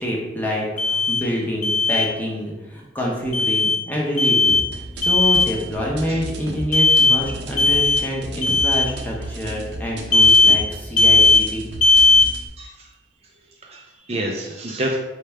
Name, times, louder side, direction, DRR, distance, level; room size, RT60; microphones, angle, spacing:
voice 1, 0.0-11.7, equal, 10° left, -3 dB, 0.8 m, -27 dB
Alarm, 0.8-1.2 1.6-2.1 3.3-3.8 4.2-4.7 5.0-5.5 6.7-7.2 7.6-8.0 8.4-8.9 10.1-10.6 11.0-11.4 11.8-12.3, left 3 dB, 45° left, 0.5 m, -16 dB
sound 1, 4.5-12.5, right 1 dB, 70° right, 0.7 m, -34 dB
voice 2, 12.6-12.9 13.6-15.0, right 1 dB, 35° right, 0 dB, 0.4 m, -28 dB
4.6 x 3.3 x 3.3 m, 1.1 s
head